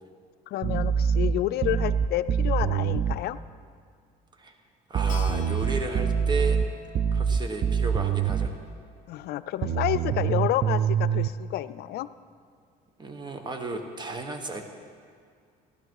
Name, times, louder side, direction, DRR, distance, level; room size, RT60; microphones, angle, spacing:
voice 1, 0.5-3.4 9.1-12.1, left 13 dB, 70° left, 13 dB, 0.5 m, -29 dB
sound 1, 0.6-3.2 4.9-8.6 9.6-11.3, right 7 dB, 45° right, 0.6 m, -25 dB
voice 2, 4.9-6.6 7.1-8.5 13.0-14.6, right 3 dB, 25° right, 6 dB, 1.4 m, -34 dB
Keyboard (musical), 5.1-10.4, left 7 dB, 50° left, 0.9 m, -47 dB
15.5 x 12.0 x 4.8 m, 2.1 s
cardioid pair, 110°, 17 cm